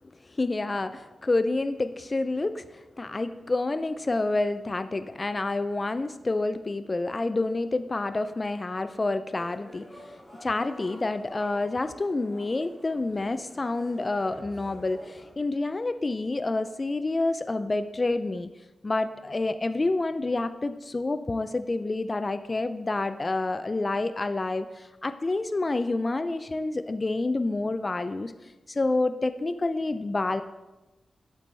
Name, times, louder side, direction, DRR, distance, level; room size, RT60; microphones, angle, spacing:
voice 1, 0.3-18.5 18.8-28.3 28.7-30.4, left 2 dB, 35° left, 11 dB, 0.4 m, -28 dB
sound 1, 9.3-15.3, left 1 dB, 15° left, 2.6 m, -49 dB
8.5 x 7.4 x 3.3 m, 1.1 s
cardioid pair, 60°, 0 cm